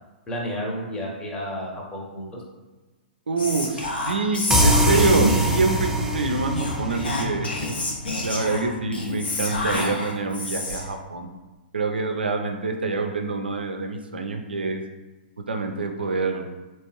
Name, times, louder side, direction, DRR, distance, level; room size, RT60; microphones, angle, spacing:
voice 1, 0.3-2.3, equal, 15° left, -3 dB, 0.9 m, -31 dB
voice 2, 3.3-7.5 8.2-11.3 11.7-14.8 15.5-16.5, right 3 dB, 80° right, 4 dB, 0.4 m, -26 dB
Whispering, 3.4-5.7 6.5-11.0, left 1 dB, 75° left, 0.8 m, -28 dB
sound 1, 4.5-8.0, equal, 5° right, 0.4 m, -23 dB
3.4 x 3.0 x 2.9 m, 1.2 s
figure-of-eight pair, 115°, 5 cm